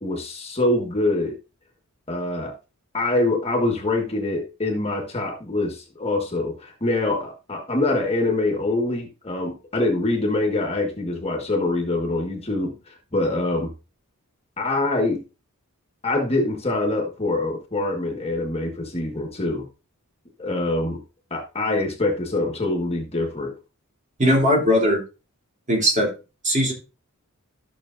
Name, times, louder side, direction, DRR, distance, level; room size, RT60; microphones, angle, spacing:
voice 1, 0.0-1.4 2.1-2.5 2.9-13.7 14.6-15.2 16.0-19.7 20.4-21.0 21.3-23.5, left 2 dB, 30° left, 1 dB, 1.5 m, -24 dB
voice 2, 24.2-25.0 25.7-26.1 26.4-26.7, equal, 35° right, -1 dB, 3.1 m, -19 dB
13.5 x 6.2 x 2.6 m, 0.30 s
head